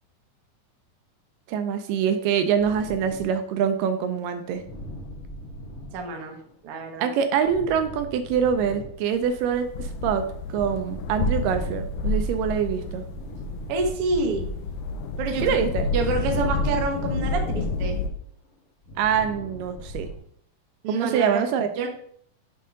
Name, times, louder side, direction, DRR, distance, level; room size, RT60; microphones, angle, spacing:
voice 1, 1.5-4.6 7.0-13.1 15.4-15.9 19.0-20.1 20.9-21.7, right 7 dB, 80° right, 8 dB, 2.1 m, -25 dB
sound 1, 2.6-15.2 15.5-20.2, equal, 45° left, 2.6 m, -42 dB
voice 2, 5.9-6.4 6.6-7.1 13.7-14.5 15.2-15.6 15.9-18.0 20.8-21.4 21.8-21.9, right 3 dB, 65° right, 3 dB, 1.5 m, -27 dB
sound 2, 9.1-18.1, left 2 dB, 85° left, 2.3 m, -29 dB
7.7 x 3.7 x 5.0 m, 0.66 s
omnidirectional pair, 4.0 m